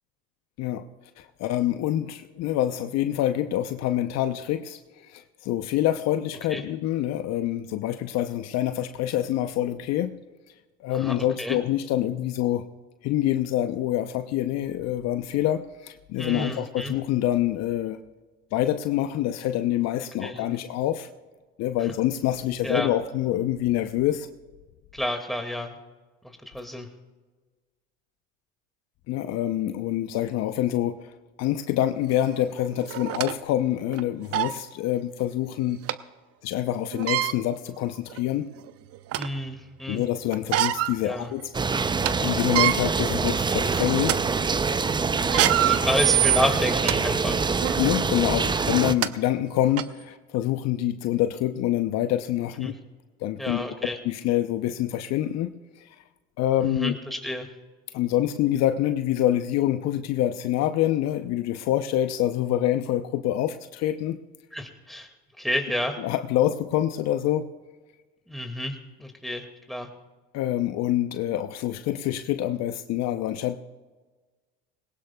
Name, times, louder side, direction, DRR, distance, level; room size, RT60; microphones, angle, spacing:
voice 1, 1.2-10.1 10.8-12.6 13.0-18.0 18.5-21.1 21.6-24.3 29.1-31.1 31.4-35.8 36.4-38.5 39.9-41.5 42.2-44.2 47.8-52.7 53.2-53.6 54.0-56.0 56.4-56.9 57.9-64.2 66.0-67.5 70.3-73.6, left 12 dB, 55° left, 9 dB, 0.8 m, -26 dB
voice 2, 10.9-11.6 16.2-16.9 20.2-20.6 22.6-22.9 24.9-25.8 26.2-26.9 39.2-40.0 41.0-41.3 45.3-47.4 52.6-52.7 53.4-54.0 56.6-57.5 64.5-65.1 65.4-66.0 68.3-69.9, left 1 dB, ahead, 4 dB, 2.1 m, -30 dB
sound 1, 32.1-32.2 32.9-33.3 33.9-34.0 34.3-34.6 35.9-36.0 36.9-37.3 38.1-38.2 38.7-39.4 40.3-41.0 41.4-41.5 41.8-42.1 42.4-42.8 43.4-43.6 44.0-44.2 45.2-47.0 47.6-47.8 48.6-48.7 49.0-49.1 49.8-49.9, right 14 dB, 50° right, 0.7 m, -24 dB
sound 2, 41.5-48.9, right 4 dB, 15° right, 0.6 m, -25 dB
20.5 x 18.5 x 2.3 m, 1.3 s
hypercardioid pair, 75°, 31 cm